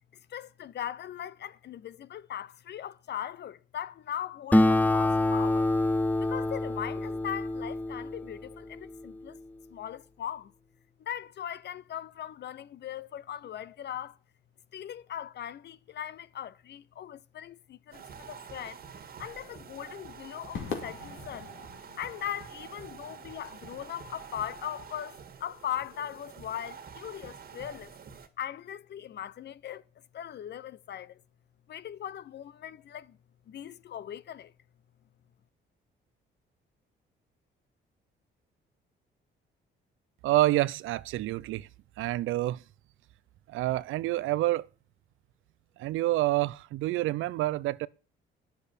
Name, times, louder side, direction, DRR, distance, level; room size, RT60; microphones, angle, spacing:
voice 1, 0.3-5.7 6.2-9.4 9.7-10.5 11.0-14.2 14.7-18.8 19.2-21.5 22.0-27.9 28.4-29.8 30.1-31.2 31.7-33.2 33.5-34.5, left 10 dB, 60° left, 0.8 m, -39 dB
Acoustic guitar, 4.5-9.4, left 1 dB, 10° left, 0.5 m, -27 dB
sound 1, 17.9-28.3, right 7 dB, 50° right, 1.9 m, -47 dB
Crowd / Fireworks, 20.6-25.0, left 6 dB, 85° left, 2.6 m, -43 dB
voice 2, 40.2-41.7 42.0-42.6 43.5-44.7 45.8-47.9, right 16 dB, 85° right, 0.5 m, -28 dB
10.0 x 6.9 x 8.4 m
cardioid pair, 90°, 20 cm